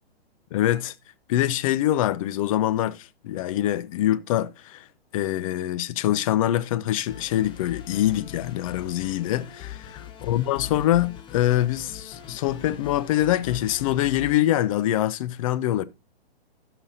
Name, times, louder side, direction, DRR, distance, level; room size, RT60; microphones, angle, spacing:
voice 1, 0.5-0.9 1.3-4.8 5.1-15.8, left 13 dB, 35° left, 0.6 m, -24 dB
sound 1, 7.1-14.4, left 9 dB, 15° left, 1.0 m, -41 dB
16.5 x 6.0 x 2.7 m
hypercardioid pair, 135°, 31 cm